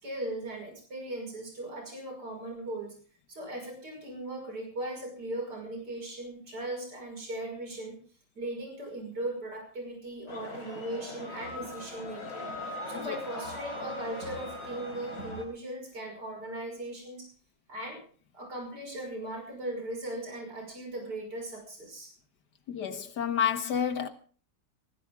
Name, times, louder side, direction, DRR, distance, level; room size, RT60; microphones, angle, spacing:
voice 1, 0.0-3.0 3.3-8.0 8.3-17.3 17.7-18.0 18.3-22.1, right 1 dB, 65° right, 6.3 m, -38 dB
sound 1, 10.3-15.4, left 1 dB, 55° left, 5.1 m, -40 dB
voice 2, 22.7-24.1, left 8 dB, 70° left, 2.0 m, -30 dB
20.5 x 15.0 x 3.7 m
omnidirectional pair, 1.9 m